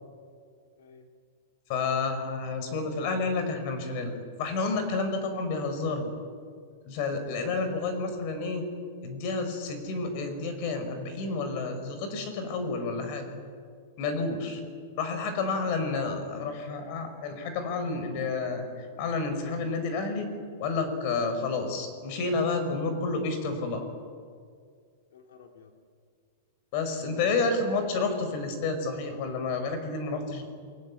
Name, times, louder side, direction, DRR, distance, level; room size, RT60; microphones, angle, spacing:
voice 1, 0.8-1.1 7.6-7.9 14.6-14.9 25.1-25.7 27.1-27.3, left 6 dB, 80° left, 3 dB, 3.2 m, -53 dB
voice 2, 1.7-4.1 4.4-6.1 6.9-8.6 9.0-13.3 14.0-14.6 15.0-20.3 20.6-23.8 26.7-30.4, left 3 dB, 35° left, 7 dB, 5.2 m, -30 dB
27.5 x 25.0 x 8.7 m, 2.1 s
supercardioid pair, 170°, 0 cm